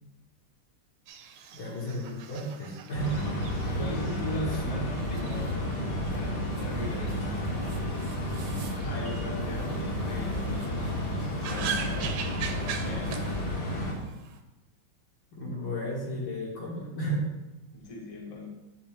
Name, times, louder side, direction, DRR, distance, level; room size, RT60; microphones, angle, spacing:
sound 1, 1.1-14.4, right 7 dB, 80° right, 1.4 m, -42 dB
voice 1, 1.5-3.1 15.3-17.2, equal, 75° left, -5 dB, 2.7 m, -33 dB
sound 2, 2.9-13.9, left 1 dB, 55° left, 1.8 m, -31 dB
voice 2, 3.8-5.7 6.1-7.6 8.8-12.1 12.8-13.3 17.7-18.5, left 1 dB, 20° left, -3 dB, 1.0 m, -39 dB
9.7 x 3.8 x 3.5 m, 1.0 s
omnidirectional pair, 2.3 m